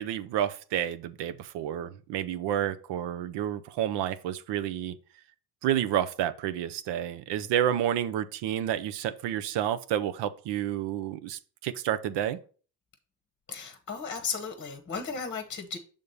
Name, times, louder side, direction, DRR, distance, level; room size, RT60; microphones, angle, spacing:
voice 1, 0.0-5.0 5.6-12.4, right 10 dB, 65° right, 0.7 m, -30 dB
voice 2, 13.5-15.8, left 5 dB, 25° left, 1.0 m, -35 dB
6.5 x 3.6 x 5.4 m
supercardioid pair, 90°, 44 cm